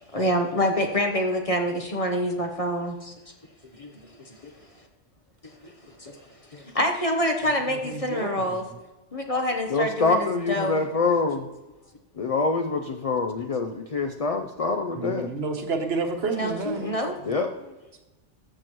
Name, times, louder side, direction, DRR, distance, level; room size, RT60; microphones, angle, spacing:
voice 1, 0.1-3.3 3.7-4.5 5.6-6.2 6.5-8.6 9.1-10.8 16.3-17.2, equal, 30° left, 3 dB, 0.9 m, -27 dB
voice 2, 7.8-8.3 14.9-16.9, right 3 dB, 60° right, 4 dB, 1.2 m, -29 dB
voice 3, 9.7-11.5 12.2-15.3 17.3-17.5, left 3 dB, 60° left, 6 dB, 0.3 m, -25 dB
13.5 x 6.8 x 3.0 m, 1.1 s
omnidirectional pair, 1.3 m